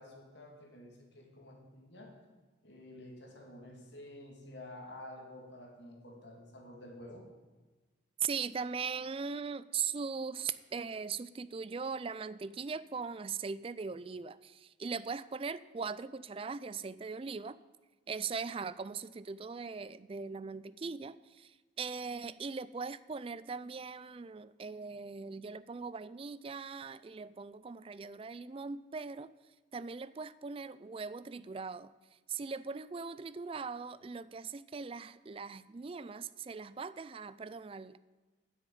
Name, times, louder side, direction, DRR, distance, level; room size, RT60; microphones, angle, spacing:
voice 1, 0.0-2.1 2.6-7.3, left 1 dB, 65° left, 1 dB, 2.3 m, -50 dB
voice 2, 8.2-17.6 18.1-29.3 29.7-31.9 32.3-38.0, right 5 dB, 30° right, 17 dB, 0.3 m, -40 dB
12.5 x 6.5 x 9.3 m, 1.3 s
head